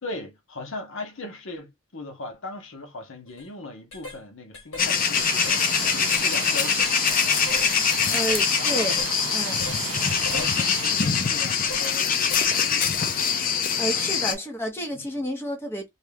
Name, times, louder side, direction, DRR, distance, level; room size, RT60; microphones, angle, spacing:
voice 1, 0.0-5.6 5.9-6.9 8.0-8.3 8.6-8.9 9.5-9.7 10.3-13.2 13.8-14.1 14.9-15.1, left 2 dB, 70° left, 0.8 m, -39 dB
sound 1, 3.3-3.5 3.9-4.2 4.5-4.9 5.2-7.2 7.5-7.8 8.3-8.5 9.0-9.1 9.6-9.8 10.3-10.5 11.0-11.2 11.7-11.9 12.3-12.5 13.0-13.1, left 2 dB, 85° left, 1.3 m, -39 dB
sound 2, 4.8-14.3, left 7 dB, 40° left, 0.5 m, -23 dB
sound 3, 5.2-10.9, right 12 dB, 85° right, 0.3 m, -34 dB
voice 2, 8.1-9.0 9.3-9.6 13.8-15.9, right 1 dB, 10° left, 0.8 m, -30 dB
2.7 x 2.3 x 3.2 m
head